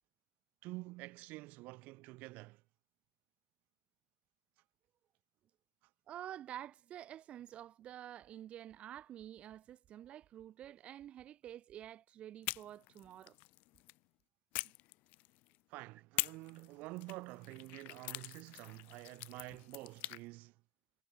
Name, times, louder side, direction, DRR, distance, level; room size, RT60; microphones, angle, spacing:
voice 1, 0.6-2.6 15.7-20.6, right 22 dB, 80° right, 7.4 m, -48 dB
voice 2, 6.1-13.4, right 11 dB, 50° right, 5.5 m, -49 dB
sound 1, 12.4-14.0 14.5-15.6 16.2-20.2, left 22 dB, 80° left, 1.0 m, -44 dB
cardioid pair, 140°, 3 cm